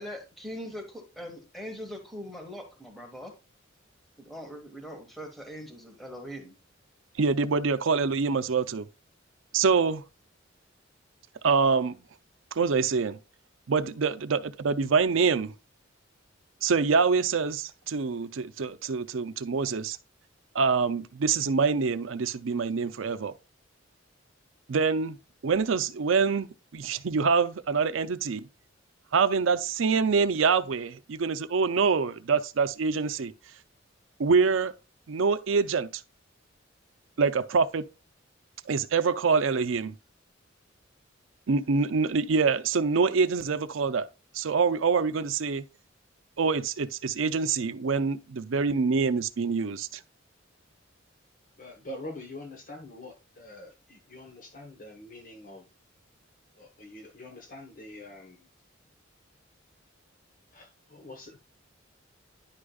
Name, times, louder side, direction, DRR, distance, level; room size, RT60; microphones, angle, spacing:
voice 1, 0.0-3.3 4.2-6.5, equal, ahead, 1.4 m, -41 dB
voice 2, 7.2-8.9 9.5-10.0 11.4-12.0 12.5-13.2 13.7-15.5 16.6-20.0 20.5-23.3 24.7-25.2 25.4-28.5 29.1-33.3 34.2-34.7 35.1-36.0 37.2-37.8 38.7-40.0 41.5-44.1 44.3-45.6 46.4-50.0, right 5 dB, 80° right, 0.5 m, -25 dB
voice 3, 51.6-55.6 56.5-58.5 60.5-61.4, left 1 dB, 45° left, 1.1 m, -45 dB
10.5 x 5.0 x 2.3 m
head